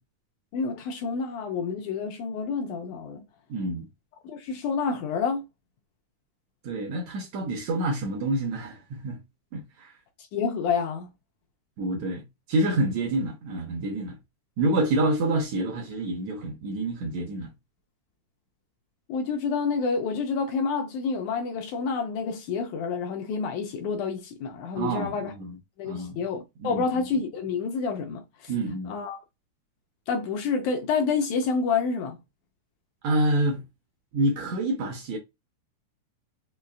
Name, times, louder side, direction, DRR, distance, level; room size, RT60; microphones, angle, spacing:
voice 1, 0.5-3.2 4.2-5.4 10.3-11.1 19.1-25.3 25.8-28.5 28.9-29.2 30.1-32.2, left 5 dB, 80° left, 1.8 m, -28 dB
voice 2, 3.5-3.9 6.6-9.2 9.5-9.9 11.8-14.2 14.6-17.5 24.8-25.6 25.8-26.2 26.6-27.0 28.5-28.9 33.0-33.6 34.1-35.2, right 2 dB, 75° right, 1.7 m, -27 dB
5.4 x 2.3 x 2.3 m
omnidirectional pair, 3.7 m